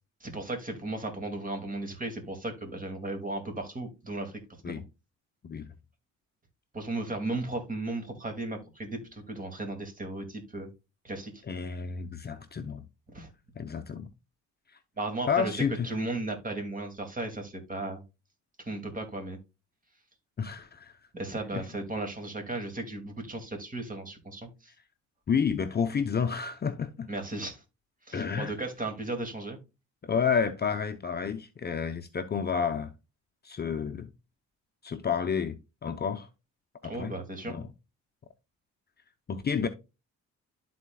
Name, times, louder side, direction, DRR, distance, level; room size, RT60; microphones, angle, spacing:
voice 1, 0.2-4.4 4.6-4.8 6.7-10.7 11.0-11.4 13.1-13.3 15.0-15.5 15.8-18.0 18.6-19.4 21.1-24.7 27.1-27.6 28.1-29.6 36.8-37.5, right 2 dB, 25° right, 2.3 m, -35 dB
voice 2, 11.5-12.8 13.6-14.1 15.3-15.9 20.4-20.9 21.5-21.6 25.3-27.1 28.1-28.5 30.0-32.9 33.4-34.1 34.8-36.3 36.8-37.1 37.5-37.7 39.3-39.7, left 6 dB, 35° left, 0.7 m, -30 dB
12.5 x 4.2 x 2.3 m
cardioid pair, 90°, 30 cm